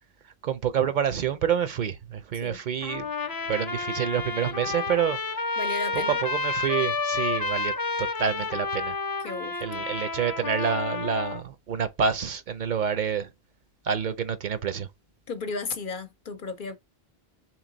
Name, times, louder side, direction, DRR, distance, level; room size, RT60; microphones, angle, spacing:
voice 1, 0.4-3.1 3.5-5.5 5.9-9.0 9.6-13.3 13.8-14.9, right 7 dB, 55° right, 0.6 m, -28 dB
Trumpet, 2.8-11.4, left 4 dB, 35° left, 0.4 m, -30 dB
voice 2, 5.6-6.2 9.2-9.8 15.3-16.8, left 4 dB, 60° left, 0.7 m, -34 dB
3.8 x 3.0 x 3.8 m
omnidirectional pair, 1.0 m